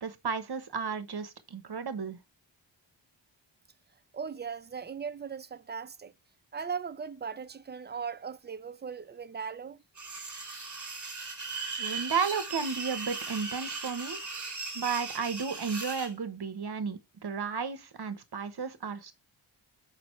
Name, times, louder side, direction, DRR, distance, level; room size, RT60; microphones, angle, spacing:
voice 1, 0.0-2.2 11.8-14.2 14.7-19.1, right 5 dB, 55° right, 1.1 m, -33 dB
voice 2, 4.1-6.1 6.5-9.8, right 6 dB, 25° right, 0.5 m, -38 dB
sound 1, 10.0-16.1, right 4 dB, 40° right, 2.5 m, -38 dB
6.0 x 5.3 x 3.1 m
wide cardioid pair, 75°, 47 cm